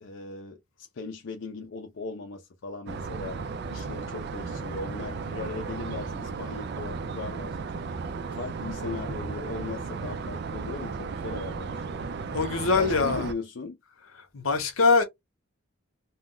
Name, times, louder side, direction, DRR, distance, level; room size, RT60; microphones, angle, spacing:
voice 1, 0.0-3.4 3.7-7.9 8.3-12.1 12.8-13.8, left 3 dB, 60° left, 0.4 m, -38 dB
sound 1, 2.9-13.3, right 4 dB, 50° right, 0.3 m, -35 dB
voice 2, 12.3-13.3 14.3-15.0, left 4 dB, 85° left, 0.8 m, -23 dB
2.2 x 2.1 x 3.7 m
head